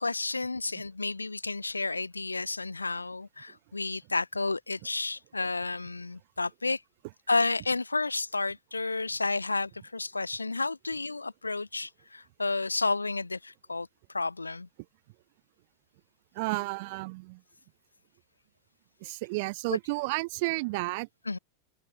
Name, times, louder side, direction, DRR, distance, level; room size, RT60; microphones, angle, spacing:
voice 1, 0.0-6.8 7.3-13.9 14.1-14.7 19.7-19.8 21.3-21.4, left 3 dB, 80° left, 0.7 m, -31 dB
voice 2, 16.3-17.4 19.0-21.1, right 25 dB, 50° right, 3.3 m, -32 dB
open air
figure-of-eight pair, 90°, 0 cm